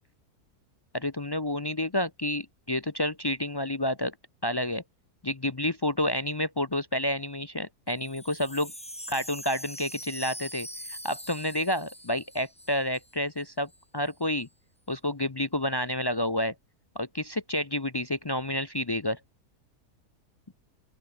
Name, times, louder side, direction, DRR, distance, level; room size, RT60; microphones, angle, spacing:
voice 1, 0.9-4.1 4.4-4.8 5.2-8.7 9.1-14.5 14.9-16.5 16.9-19.2, left 1 dB, 35° left, 0.4 m, -29 dB
Wind chime, 7.9-13.1 13.4-13.5 13.7-14.1, equal, 5° left, 3.9 m, -43 dB
open air
omnidirectional pair, 1.7 m